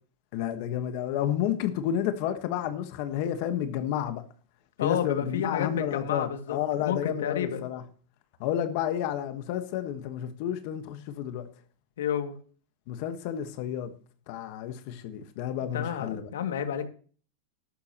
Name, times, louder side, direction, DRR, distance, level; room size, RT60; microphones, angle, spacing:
voice 1, 0.3-4.2 4.8-7.8 8.4-11.5 12.9-13.9 14.3-16.3, left 10 dB, 45° left, 1.3 m, -31 dB
voice 2, 4.8-7.7 12.0-12.3 15.6-16.8, left 9 dB, 90° left, 2.2 m, -31 dB
13.5 x 11.5 x 3.0 m
supercardioid pair, 160°, 0 cm